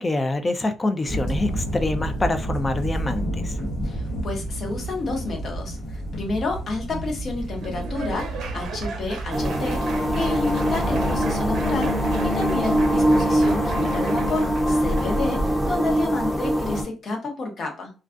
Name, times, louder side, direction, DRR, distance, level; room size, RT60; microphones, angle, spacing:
voice 1, 0.0-3.5, left 2 dB, 25° left, 0.3 m, -25 dB
sound 1, 1.1-15.7, right 1 dB, 85° left, 1.0 m, -31 dB
voice 2, 3.8-17.9, left 3 dB, 50° left, 0.8 m, -30 dB
Laughter / Applause, 7.3-15.2, right 5 dB, 85° right, 0.5 m, -38 dB
sound 2, 9.3-16.8, equal, ahead, 0.8 m, -23 dB
2.3 x 2.3 x 2.4 m
cardioid pair, 90°, 0 cm